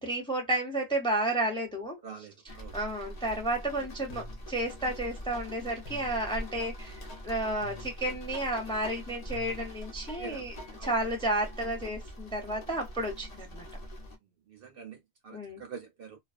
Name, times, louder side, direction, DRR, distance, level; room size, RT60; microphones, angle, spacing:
voice 1, 0.0-2.0 2.7-10.6 10.8-13.7 15.3-15.6, right 1 dB, 5° left, 0.5 m, -32 dB
voice 2, 2.0-2.8 10.2-10.5 10.8-11.0 14.5-15.0 15.2-16.2, right 6 dB, 60° right, 0.7 m, -45 dB
sound 1, 2.5-14.2, equal, 40° left, 0.7 m, -43 dB
sound 2, 4.1-4.9 5.3-11.0, left 3 dB, 65° left, 1.0 m, -49 dB
2.4 x 2.2 x 2.4 m
omnidirectional pair, 1.2 m